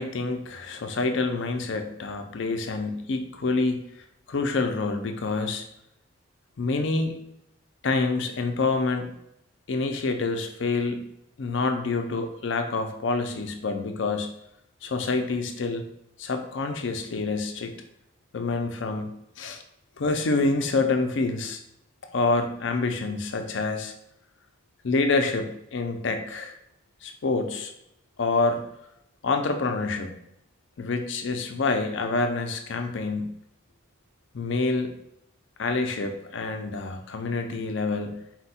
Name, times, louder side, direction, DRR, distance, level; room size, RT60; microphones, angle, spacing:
voice 1, 0.0-3.8 4.3-5.6 6.6-7.1 7.8-9.1 9.7-11.0 11.4-14.3 14.8-15.9 16.2-17.7 18.3-19.6 20.0-21.6 22.1-23.9 24.8-26.5 27.0-27.7 28.2-28.6 29.2-30.1 30.8-33.4 34.3-34.9 35.6-38.2, left 3 dB, 60° left, 5 dB, 0.5 m, -27 dB
4.2 x 2.3 x 4.2 m, 0.80 s
head